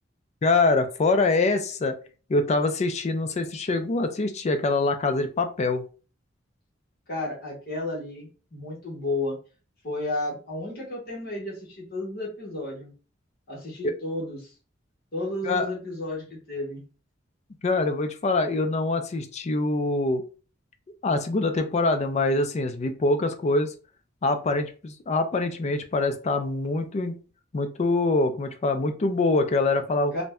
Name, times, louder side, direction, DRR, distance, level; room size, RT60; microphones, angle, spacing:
voice 1, 0.4-1.9 2.3-5.8 13.8-13.9 15.4-15.7 17.6-20.2 21.0-23.7 24.2-27.2 27.5-30.1, left 3 dB, 35° left, 8 dB, 0.4 m, -24 dB
voice 2, 7.1-9.4 9.8-12.9 13.5-14.5 15.1-16.8 30.1-30.2, left 2 dB, 55° left, -3 dB, 1.0 m, -32 dB
2.6 x 2.1 x 3.4 m, 0.36 s
head